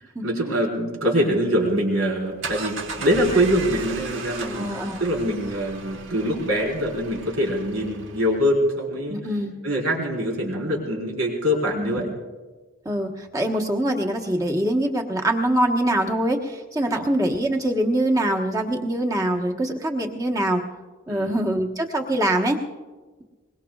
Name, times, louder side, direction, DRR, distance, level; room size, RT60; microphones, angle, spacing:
voice 1, 0.2-4.7 5.0-9.2 9.6-12.1 16.9-17.1 21.1-21.3, equal, 80° right, -1 dB, 4.4 m, -24 dB
sound 1, 2.1-8.5, right 4 dB, 60° right, 1.4 m, -36 dB
voice 2, 4.5-5.0 9.1-9.5 11.7-12.0 12.8-20.6 21.1-22.6, right 1 dB, 15° right, 1 dB, 1.2 m, -24 dB
23.5 x 21.0 x 2.4 m, 1.3 s
head